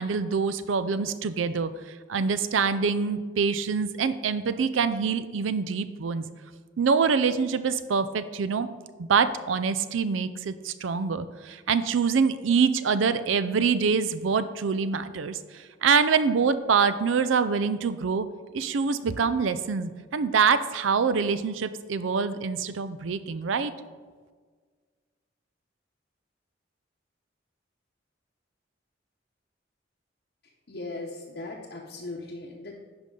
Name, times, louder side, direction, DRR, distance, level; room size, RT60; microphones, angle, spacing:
voice 1, 0.0-1.7 2.1-6.3 6.8-8.7 9.0-18.3 18.5-23.7, right 5 dB, 90° right, 13 dB, 0.5 m, -25 dB
voice 2, 30.7-32.8, left 2 dB, 55° left, -3 dB, 0.8 m, -38 dB
10.5 x 5.3 x 3.8 m, 1.5 s
head